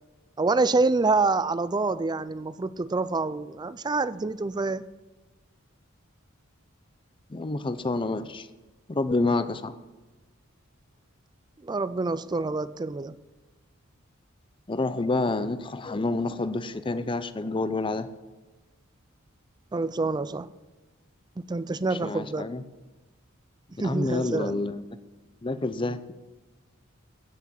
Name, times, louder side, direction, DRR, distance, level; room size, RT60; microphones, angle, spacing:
voice 1, 0.4-4.8 11.6-13.1 19.7-20.5 21.4-22.5 23.8-24.5, right 3 dB, 20° right, 0.4 m, -26 dB
voice 2, 7.3-8.5 8.9-9.8 14.7-18.1 21.9-22.6 23.8-24.8 25.4-26.1, left 2 dB, 25° left, 0.6 m, -28 dB
15.5 x 6.0 x 7.2 m
head